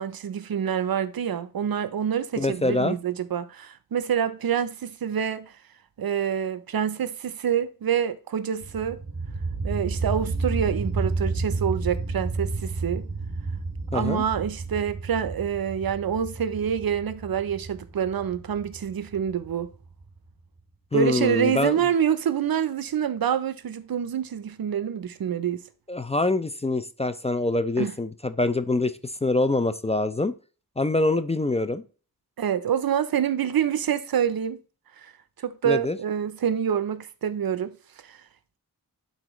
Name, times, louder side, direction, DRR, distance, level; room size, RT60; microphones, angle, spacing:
voice 1, 0.0-5.5 6.0-9.0 9.6-13.1 13.9-19.7 20.9-25.6 27.8-27.9 32.4-34.6 35.4-37.8 38.0-38.2, right 8 dB, 70° right, 0.6 m, -26 dB
voice 2, 2.4-3.0 13.9-14.2 20.9-21.8 25.9-30.3 30.8-31.8 35.6-36.0, left 2 dB, 20° left, 0.4 m, -25 dB
sound 1, 8.6-20.2, right 3 dB, 45° right, 2.1 m, -31 dB
11.5 x 4.1 x 3.0 m
wide cardioid pair, 70°, 36 cm